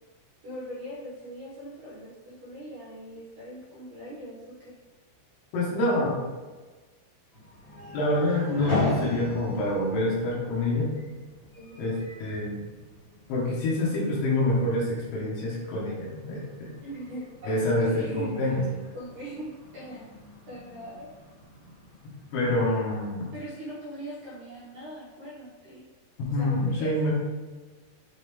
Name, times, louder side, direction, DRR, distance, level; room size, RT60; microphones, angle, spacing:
voice 1, 0.4-4.7 11.5-12.0 16.8-18.7 18.9-20.1 20.5-21.1 23.3-25.8 26.3-27.1, equal, 60° right, -8 dB, 2.3 m, -41 dB
voice 2, 5.5-6.2 7.9-10.9 11.8-11.9 12.2-12.7 13.3-16.7 17.4-18.6 22.3-23.2 26.2-27.1, left 1 dB, 85° left, -5 dB, 4.5 m, -26 dB
sound 1, 7.3-22.6, left 1 dB, 50° left, 1.4 m, -39 dB
9.0 x 3.4 x 3.6 m, 1.3 s
omnidirectional pair, 5.7 m